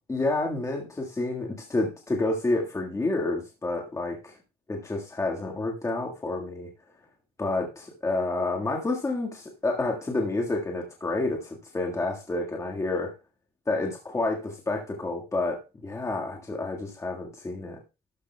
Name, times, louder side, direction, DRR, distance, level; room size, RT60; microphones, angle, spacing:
voice 1, 0.1-4.3 4.7-6.7 7.4-13.1 13.7-17.8, left 2 dB, 15° left, 0 dB, 1.7 m, -29 dB
12.5 x 9.9 x 2.3 m, 0.28 s
cardioid pair, 110°, 17 cm